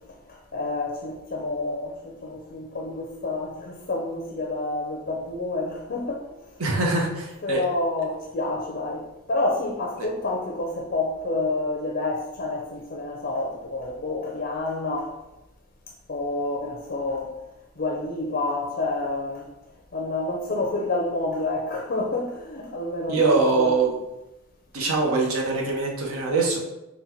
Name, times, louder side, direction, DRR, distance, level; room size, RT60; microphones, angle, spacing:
voice 1, 0.5-6.2 7.4-15.1 16.1-17.3 17.8-19.4 19.9-23.8, left 2 dB, 45° left, 0 dB, 0.5 m, -28 dB
voice 2, 6.6-7.6 10.0-10.1 23.1-23.9 24.7-26.6, right 3 dB, 80° right, 0 dB, 0.8 m, -23 dB
4.0 x 2.2 x 4.4 m, 0.98 s
head